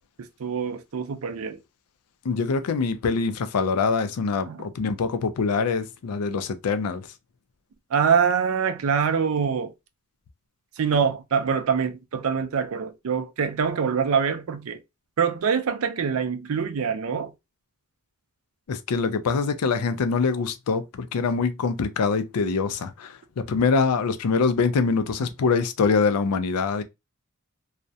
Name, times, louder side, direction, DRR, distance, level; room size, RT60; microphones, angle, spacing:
voice 1, 0.2-1.6 4.5-4.7 7.9-9.7 10.8-14.8 15.2-17.3, right 6 dB, 70° right, 0.4 m, -24 dB
voice 2, 2.2-7.1 18.7-26.8, left 4 dB, 85° left, 0.4 m, -24 dB
2.3 x 2.0 x 2.6 m
head